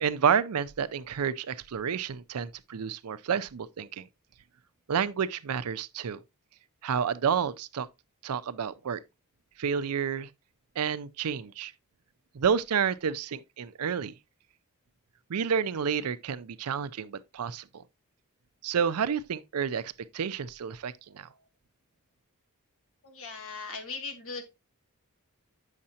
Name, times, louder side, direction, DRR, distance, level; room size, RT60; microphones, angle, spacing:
voice 1, 0.0-4.1 4.9-6.2 6.8-7.9 8.2-9.0 9.6-10.3 10.8-11.7 12.3-14.1 15.3-17.8 18.6-21.3, right 7 dB, 80° right, 0.5 m, -30 dB
voice 2, 23.0-24.4, left 4 dB, 65° left, 1.6 m, -38 dB
8.6 x 6.5 x 2.8 m
head